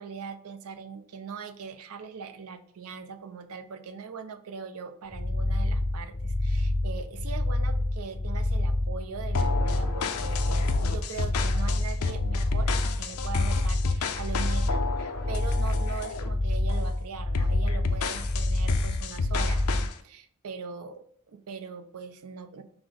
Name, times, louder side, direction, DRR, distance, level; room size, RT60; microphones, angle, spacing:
voice 1, 0.0-22.6, right 5 dB, 85° right, 8 dB, 0.5 m, -41 dB
sound 1, 5.1-19.9, left 1 dB, 20° left, 0.3 m, -27 dB
sound 2, 9.3-16.3 16.7-16.9 17.3-19.9, left 5 dB, 80° left, 0.5 m, -32 dB
5.9 x 2.0 x 3.8 m, 0.64 s
head